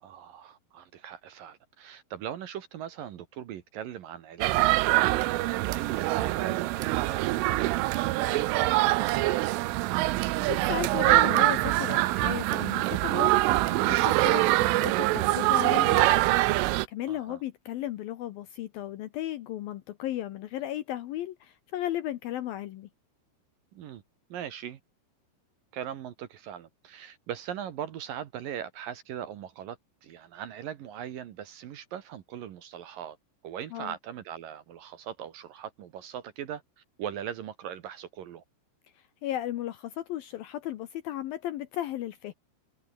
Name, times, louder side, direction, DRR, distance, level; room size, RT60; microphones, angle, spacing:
voice 1, 0.0-7.9 8.2-9.6 17.1-17.4 23.7-24.0 24.3-24.8 25.7-33.2 33.4-38.4, right 10 dB, 65° right, 2.4 m, -40 dB
sound 1, 4.4-16.9, right 18 dB, 85° right, 3.6 m, -24 dB
voice 2, 10.4-16.3 16.6-22.9 33.7-33.9 39.2-42.3, left 13 dB, 75° left, 2.1 m, -35 dB
omnidirectional pair, 5.5 m